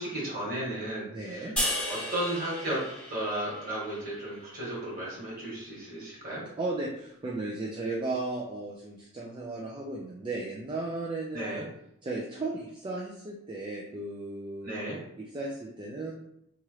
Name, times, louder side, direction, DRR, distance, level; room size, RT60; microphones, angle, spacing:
voice 1, 0.0-1.5 1.9-2.8 3.1-6.4 11.3-11.6 14.6-15.0, right 1 dB, 40° right, -6 dB, 1.3 m, -34 dB
voice 2, 1.1-1.6 6.6-11.6 12.0-14.8 15.2-16.1, right 2 dB, 20° right, -3 dB, 0.3 m, -35 dB
sound 1, 1.6-4.8, left 1 dB, 5° left, 0.9 m, -35 dB
2.9 x 2.4 x 3.1 m, 0.76 s
head